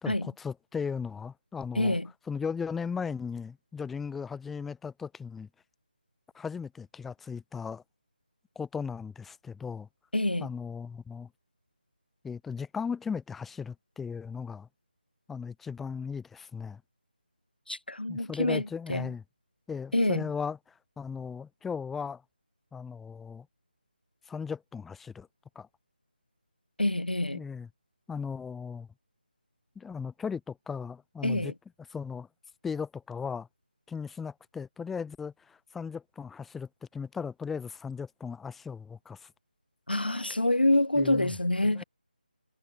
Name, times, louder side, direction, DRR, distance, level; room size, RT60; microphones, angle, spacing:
voice 1, 0.0-2.0 2.3-5.5 6.3-7.8 8.6-9.9 10.4-11.3 12.2-14.7 15.3-16.8 18.1-19.2 19.7-20.6 21.0-22.2 22.7-23.5 24.3-25.3 25.6-25.7 27.3-27.7 28.1-28.9 29.8-31.5 31.9-32.3 32.6-33.5 33.9-39.3 41.0-41.3 41.6-41.8, left 6 dB, 5° left, 0.5 m, -37 dB
voice 2, 1.8-2.1 10.1-10.5 17.7-19.1 19.9-20.3 26.8-27.4 31.2-31.5 39.9-41.8, left 1 dB, 85° left, 0.4 m, -27 dB
figure-of-eight pair, 155°, 5 cm